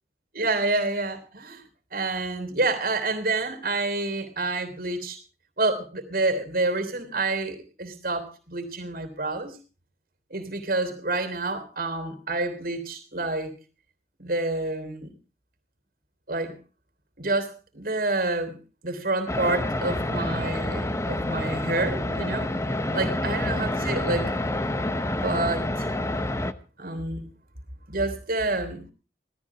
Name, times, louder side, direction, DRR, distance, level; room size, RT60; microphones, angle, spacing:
voice 1, 0.3-1.6 1.9-5.2 5.6-9.6 10.3-13.5 14.2-15.1 16.3-16.5 17.2-18.6 18.8-22.5 22.9-24.3 25.2-25.9 26.8-27.2 27.9-28.9, right 2 dB, 55° right, 7 dB, 3.2 m, -28 dB
sound 1, 19.3-26.5, left 1 dB, 15° left, 0.8 m, -28 dB
17.5 x 13.5 x 4.7 m, 0.35 s
head